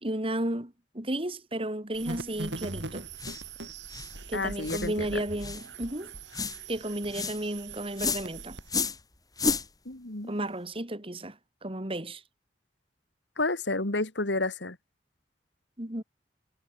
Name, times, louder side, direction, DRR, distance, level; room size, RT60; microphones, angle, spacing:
voice 1, 0.0-3.1 4.3-6.1 6.7-8.6 10.2-12.2 15.8-16.0, right 1 dB, 30° right, 3.0 m, -33 dB
sound 1, 1.9-8.7, right 3 dB, 80° right, 7.5 m, -41 dB
sound 2, 3.2-3.4 3.9-4.1 4.6-4.9 5.4-5.7 6.3-6.6 7.1-7.4 8.0-8.3 8.7-9.0 9.4-9.7, left 4 dB, 20° left, 5.1 m, -30 dB
voice 2, 4.3-5.2 9.9-10.3 13.4-14.8, left 2 dB, 80° left, 2.7 m, -30 dB
head